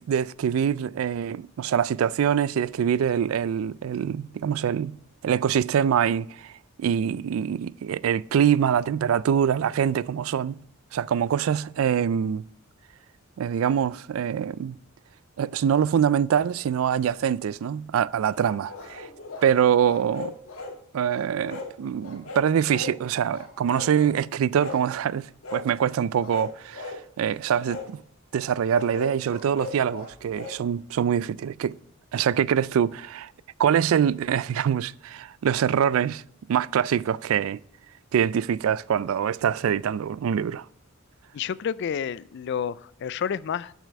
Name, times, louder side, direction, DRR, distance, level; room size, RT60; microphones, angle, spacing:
voice 1, 0.1-4.9 5.2-6.5 6.8-10.6 10.9-12.4 13.4-14.8 15.4-19.1 19.4-20.3 20.9-28.0 28.3-31.8 32.1-33.3 33.6-36.2 36.5-37.6 38.1-40.7, right 8 dB, 75° right, 0.3 m, -24 dB
sound 1, 18.4-19.5 19.8-20.8 21.1-21.7 22.0-23.0 23.3-24.1 24.6-24.9 25.4-25.7 26.2-27.0 27.6-27.9 28.7-30.6, left 4 dB, 75° left, 2.0 m, -38 dB
voice 2, 41.3-43.7, left 7 dB, 55° left, 0.3 m, -30 dB
8.4 x 7.4 x 4.6 m
head